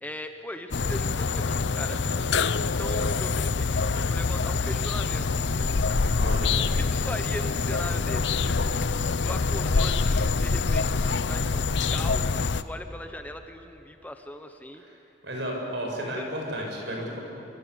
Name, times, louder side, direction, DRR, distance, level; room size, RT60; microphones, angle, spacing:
voice 1, 0.0-2.0 2.6-5.7 6.8-8.8 9.2-14.8 16.2-16.3, left 1 dB, 10° left, 6 dB, 1.1 m, -39 dB
sound 1, 0.7-12.6, left 4 dB, 65° left, 0.6 m, -25 dB
voice 2, 6.2-6.5 14.8-17.2, equal, 70° right, 0 dB, 7.5 m, -33 dB
27.5 x 24.0 x 8.4 m, 2.8 s
head